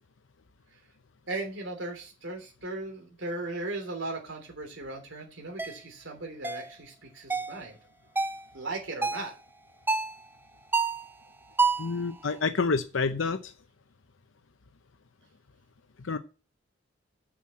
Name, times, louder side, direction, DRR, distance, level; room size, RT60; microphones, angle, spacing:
voice 1, 1.3-7.8 8.5-9.3, right 2 dB, 70° right, 1 dB, 3.3 m, -37 dB
sound 1, 5.6-5.8 6.4-6.7 7.3-7.6 8.2-8.4 9.0-9.3 9.9-10.2 10.7-11.1 11.6-11.9, right 4 dB, 10° right, 0.5 m, -27 dB
voice 2, 11.8-13.5 16.0-16.2, left 4 dB, 80° left, 9 dB, 0.7 m, -28 dB
7.4 x 6.1 x 7.5 m, 0.33 s
head